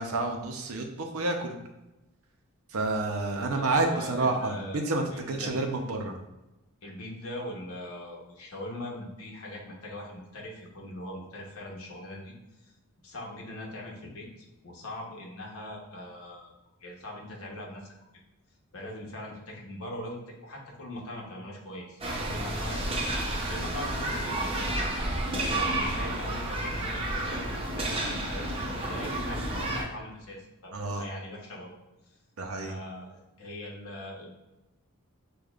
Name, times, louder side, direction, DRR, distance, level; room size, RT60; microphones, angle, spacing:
voice 1, 0.0-1.6 2.7-6.2 30.7-31.0 32.4-32.7, right 2 dB, 70° right, 3 dB, 0.6 m, -29 dB
voice 2, 3.5-4.8 5.1-5.5 6.8-12.3 13.0-16.5 16.8-17.9 18.7-22.9 23.5-31.7 32.6-34.3, left 1 dB, 65° left, -2 dB, 1.0 m, -41 dB
sound 1, 22.0-29.8, right 1 dB, 25° right, 0.6 m, -31 dB
6.5 x 2.3 x 2.4 m, 1.0 s
head